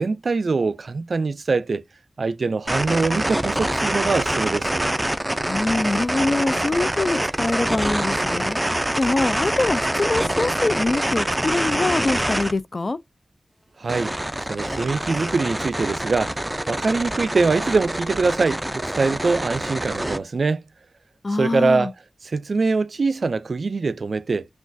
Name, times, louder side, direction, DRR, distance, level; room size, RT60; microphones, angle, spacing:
voice 1, 0.0-1.8 2.2-4.9 13.8-14.1 14.5-20.6 21.4-21.9 22.3-24.5, right 4 dB, 70° right, 0.4 m, -23 dB
sound 1, 2.7-12.5 13.9-20.2, right 1 dB, 15° right, 0.5 m, -25 dB
voice 2, 5.5-8.6 9.0-13.0 21.2-21.9, left 2 dB, 50° left, 0.3 m, -24 dB
6.0 x 2.3 x 2.6 m
cardioid pair, 55°, 0 cm